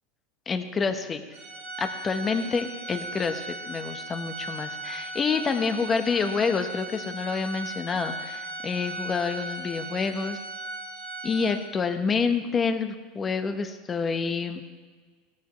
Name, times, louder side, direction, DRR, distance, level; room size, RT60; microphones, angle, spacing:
voice 1, 0.5-1.2 1.8-10.4 11.2-14.6, left 5 dB, 25° left, 7 dB, 1.2 m, -28 dB
Organ, 1.3-12.0, right 2 dB, 75° right, 2.5 m, -37 dB
17.5 x 12.5 x 3.2 m, 1.5 s
supercardioid pair, 115°, 0 cm